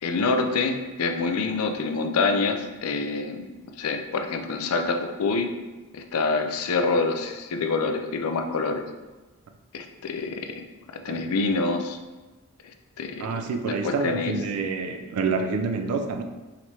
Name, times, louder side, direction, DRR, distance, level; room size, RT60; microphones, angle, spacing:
voice 1, 0.0-3.5 3.8-5.5 5.9-8.8 9.7-10.6 11.0-12.0 13.0-13.3 13.6-14.3, left 3 dB, 80° left, 6 dB, 0.4 m, -26 dB
voice 2, 13.2-16.2, right 4 dB, 90° right, 6 dB, 0.4 m, -28 dB
5.0 x 3.0 x 2.8 m, 1.2 s
head